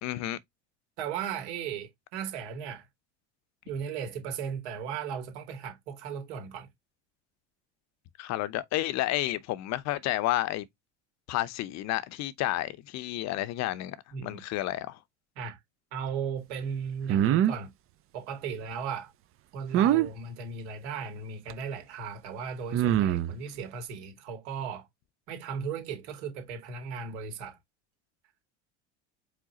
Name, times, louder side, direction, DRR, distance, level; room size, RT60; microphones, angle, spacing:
voice 1, 0.0-0.4 8.2-10.7 11.3-14.0 14.2-15.0, left 15 dB, 50° left, 0.7 m, -31 dB
voice 2, 1.0-2.8 3.6-6.7 14.1-14.4 15.4-15.6 15.9-17.7 18.1-19.1 19.5-24.9 25.3-27.6, right 6 dB, 75° right, 2.2 m, -36 dB
sound 1, 17.1-17.6 19.7-20.1 21.5-21.6 22.7-23.4, right 11 dB, 40° right, 0.5 m, -23 dB
5.0 x 3.7 x 2.8 m
hypercardioid pair, 85°, 34 cm